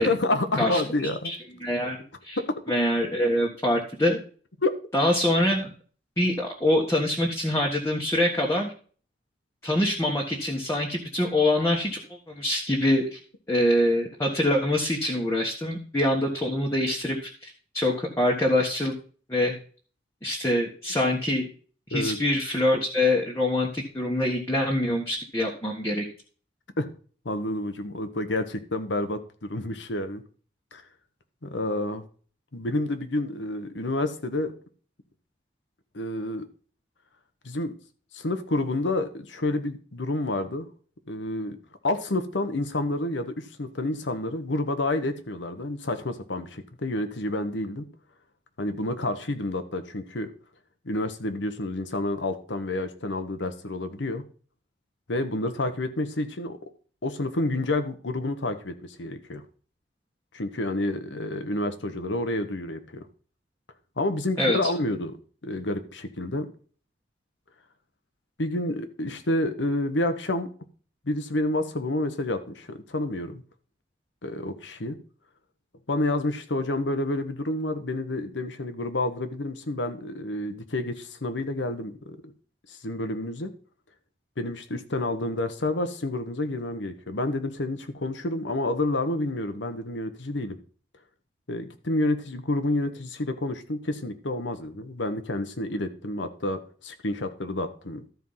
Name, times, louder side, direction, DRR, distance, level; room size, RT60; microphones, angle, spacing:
voice 1, 0.0-1.3 2.4-2.5 4.6-4.7 21.9-22.2 26.8-26.9 27.2-30.2 30.7-30.8 31.4-32.0 32.5-34.5 35.9-36.5 37.4-37.7 38.1-40.7 41.1-41.6 41.8-47.9 48.6-50.3 50.8-54.2 55.1-56.6 57.0-59.4 60.3-63.0 64.0-65.1 65.4-66.5 68.4-70.5 71.0-73.4 74.2-75.0 75.9-82.3 82.7-83.5 84.4-90.6 91.5-98.0, left 2 dB, 80° left, 9 dB, 1.2 m, -29 dB
voice 2, 1.2-2.4 2.7-4.2 4.9-5.7 6.2-8.7 9.6-13.2 13.5-18.9 19.3-19.5 20.2-21.5 21.9-26.0 64.4-64.7, left 1 dB, 15° left, -2 dB, 1.4 m, -25 dB
13.0 x 4.7 x 5.6 m, 0.41 s
head